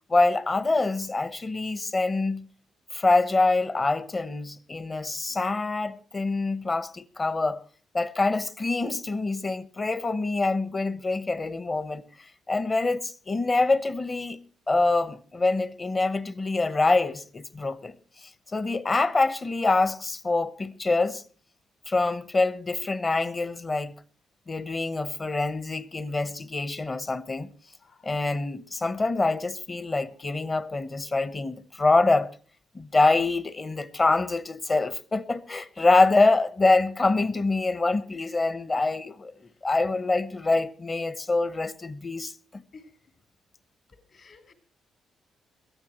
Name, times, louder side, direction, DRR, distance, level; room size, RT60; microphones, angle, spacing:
voice 1, 0.1-2.5 2.9-7.6 7.9-12.0 12.5-14.4 14.7-17.9 18.5-21.2 21.9-23.9 24.5-27.5 28.0-32.3 32.7-39.3 39.6-42.6, left 3 dB, 30° left, 0.9 m, -25 dB
voice 2, 44.1-44.5, left 4 dB, 55° left, 3.8 m, -50 dB
22.5 x 14.5 x 3.0 m
cardioid pair, 90°, 0 cm